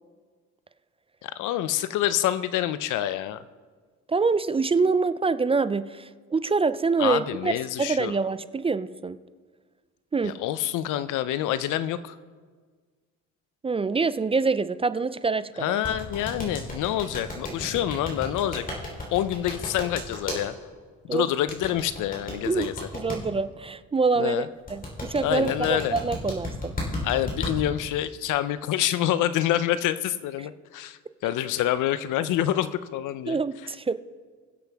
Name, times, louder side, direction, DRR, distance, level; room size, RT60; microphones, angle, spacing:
voice 1, 1.2-3.4 7.0-8.1 10.2-12.2 15.6-18.6 19.1-20.5 21.0-22.9 24.2-24.5 25.2-26.0 27.0-33.4, left 12 dB, 85° left, 14 dB, 0.6 m, -27 dB
voice 2, 4.1-7.5 7.8-9.2 10.1-10.3 13.6-15.8 21.1-21.3 22.5-26.7 33.3-34.0, right 4 dB, 20° right, 14 dB, 0.3 m, -25 dB
sound 1, 15.8-20.4 21.5-23.2 24.7-27.5, left 2 dB, 30° left, 3.3 m, -33 dB
22.0 x 7.8 x 3.5 m, 1.5 s
cardioid pair, 90°, 30 cm